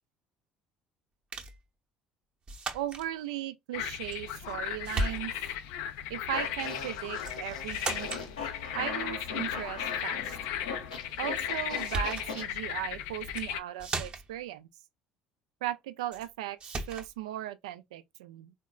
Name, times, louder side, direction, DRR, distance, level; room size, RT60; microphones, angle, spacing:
sound 1, 1.3-1.6 2.5-3.1 4.1-4.6 4.8-5.5 7.2-7.4 7.7-8.3 11.4-11.5 11.8-12.3 13.2-13.5 13.8-14.4 16.1-16.3 16.6-17.1, right 2 dB, 30° right, 0.8 m, -36 dB
voice 1, 2.7-5.3 6.1-8.1 8.7-10.4 11.2-14.7 15.6-16.6 16.9-18.5, right 13 dB, 75° right, 0.3 m, -37 dB
sound 2, 3.7-13.6, left 11 dB, 70° left, 0.3 m, -36 dB
Fart, 6.3-12.4, left 4 dB, 90° left, 0.8 m, -40 dB
3.7 x 2.1 x 2.3 m
hypercardioid pair, 60°, 4 cm